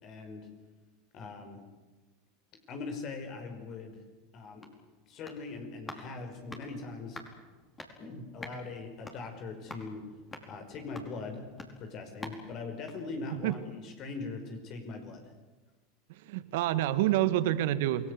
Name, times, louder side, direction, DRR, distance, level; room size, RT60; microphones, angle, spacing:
voice 1, 0.0-0.5 1.1-1.6 2.7-4.0 4.3-4.7 5.1-7.2 8.0-10.0 10.5-11.5 11.8-15.3, left 3 dB, 45° left, 5 dB, 5.3 m, -41 dB
sound 1, 4.3-13.8 14.1-14.2, left 2 dB, 15° left, 5.0 m, -49 dB
voice 2, 16.2-18.1, right 13 dB, 70° right, 13 dB, 1.7 m, -27 dB
28.5 x 19.5 x 8.3 m, 1.2 s
hypercardioid pair, 95°, 0 cm